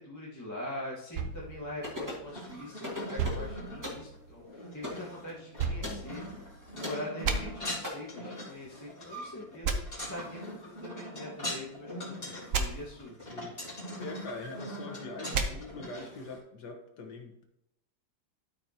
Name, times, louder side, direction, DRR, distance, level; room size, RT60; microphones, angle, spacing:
voice 1, 0.0-6.2 6.7-13.2, left 1 dB, 10° left, -6 dB, 1.5 m, -43 dB
sound 1, 1.1-2.6 3.2-4.4 5.6-6.7 7.2-7.4 9.6-9.8 12.5-12.6 15.3-15.5, right 5 dB, 55° right, 0.9 m, -33 dB
sound 2, 1.8-2.3 2.8-3.5 3.8-4.1 4.8-5.0 5.8-6.0 6.8-7.0 7.8-7.9, left 1 dB, 10° right, 2.0 m, -37 dB
sound 3, 2.3-16.4, left 1 dB, 25° left, 3.4 m, -42 dB
voice 2, 14.0-17.4, left 2 dB, 60° left, 3 dB, 1.7 m, -43 dB
13.0 x 4.9 x 2.9 m, 0.80 s
omnidirectional pair, 2.1 m